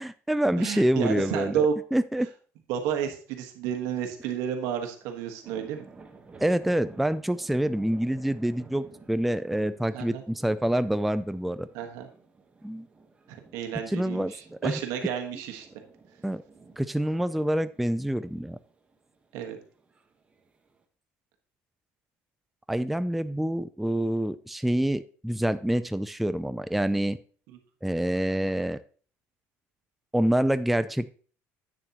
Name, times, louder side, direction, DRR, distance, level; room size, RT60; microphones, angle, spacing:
voice 1, 0.0-1.7 1.9-2.3 6.4-11.7 12.6-12.9 13.9-14.8 16.2-16.4 16.8-18.6 22.7-27.2 27.8-28.8 30.1-31.2, right 1 dB, ahead, 12 dB, 0.3 m, -26 dB
voice 2, 0.6-1.7 2.7-5.8 9.9-10.2 11.7-12.1 13.3-15.7 19.3-19.6 27.5-27.6, right 8 dB, 80° right, 5 dB, 1.4 m, -31 dB
sound 1, 4.5-20.8, right 4 dB, 20° right, 1.2 m, -53 dB
8.9 x 6.7 x 2.9 m, 0.41 s
cardioid pair, 120°, 6 cm